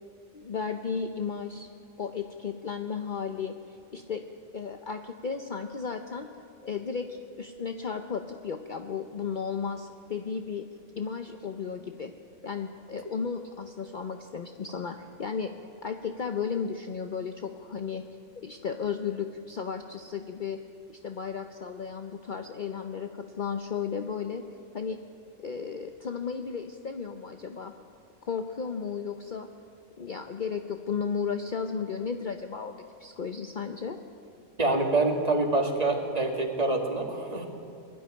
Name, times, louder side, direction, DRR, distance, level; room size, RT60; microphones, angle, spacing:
voice 1, 0.3-1.7 2.0-4.2 4.5-6.3 6.6-10.7 11.0-12.1 12.4-15.5 15.8-18.0 18.4-20.6 20.9-24.4 24.7-25.0 25.4-27.7 28.2-29.5 30.0-34.0, left 6 dB, 45° left, 6 dB, 0.9 m, -34 dB
voice 2, 34.6-37.5, right 2 dB, 35° right, 2 dB, 2.3 m, -26 dB
21.5 x 12.5 x 10.0 m, 2.6 s
omnidirectional pair, 1.2 m